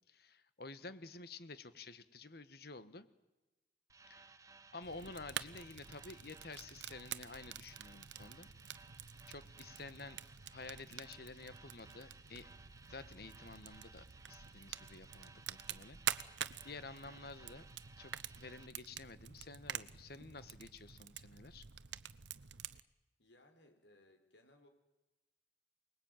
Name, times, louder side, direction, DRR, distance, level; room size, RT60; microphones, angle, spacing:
voice 1, 0.1-3.1 4.1-4.5 4.7-8.5 9.3-10.2 10.5-12.5 12.9-16.0 16.6-17.7 18.0-21.6, left 3 dB, 55° left, 13 dB, 1.5 m, -51 dB
sound 1, 3.9-18.7, right 4 dB, 20° right, 1.1 m, -60 dB
Fire, 4.8-22.8, right 9 dB, 80° right, 0.9 m, -47 dB
voice 2, 23.2-24.7, left 1 dB, 75° left, 6 dB, 4.5 m, -65 dB
28.5 x 20.5 x 9.2 m, 1.1 s
head